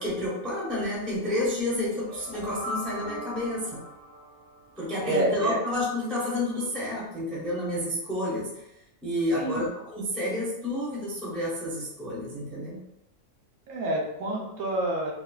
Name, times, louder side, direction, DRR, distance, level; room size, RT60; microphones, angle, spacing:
voice 1, 0.0-3.8 4.8-8.6 9.0-12.8, left 1 dB, ahead, -7 dB, 0.5 m, -30 dB
sound 1, 1.8-4.9, left 1 dB, 55° right, 0.7 m, -39 dB
voice 2, 5.0-5.6 9.3-9.6 13.7-15.1, right 1 dB, 80° right, -1 dB, 1.1 m, -28 dB
3.1 x 2.2 x 2.2 m, 0.87 s
omnidirectional pair, 1.5 m